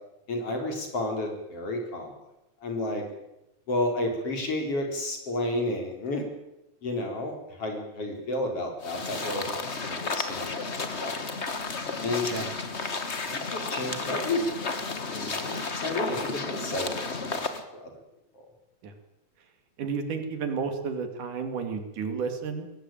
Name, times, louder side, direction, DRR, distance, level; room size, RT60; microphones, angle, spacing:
voice 1, 0.3-2.1 2.6-3.0 3.7-6.3 6.8-10.5 11.0-11.1 12.0-12.3 13.3-14.6 15.1-17.9, left 1 dB, 45° left, 3 dB, 5.2 m, -31 dB
sound 1, 8.8-17.6, left 4 dB, 30° left, 1.3 m, -32 dB
voice 2, 19.8-22.7, right 5 dB, 80° right, 7 dB, 4.1 m, -32 dB
22.5 x 17.0 x 9.0 m, 0.90 s
omnidirectional pair, 3.6 m